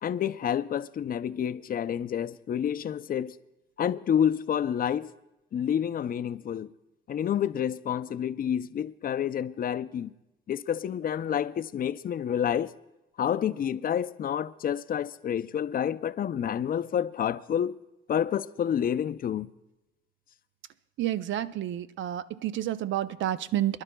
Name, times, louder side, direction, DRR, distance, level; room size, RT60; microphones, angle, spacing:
voice 1, 0.0-3.3 3.8-5.1 5.5-6.7 7.1-10.1 10.5-12.7 13.2-17.8 18.1-19.5, left 9 dB, 45° left, 0.5 m, -29 dB
voice 2, 21.0-23.8, right 12 dB, 70° right, 0.5 m, -30 dB
27.0 x 11.0 x 2.2 m
cardioid pair, 90°, 20 cm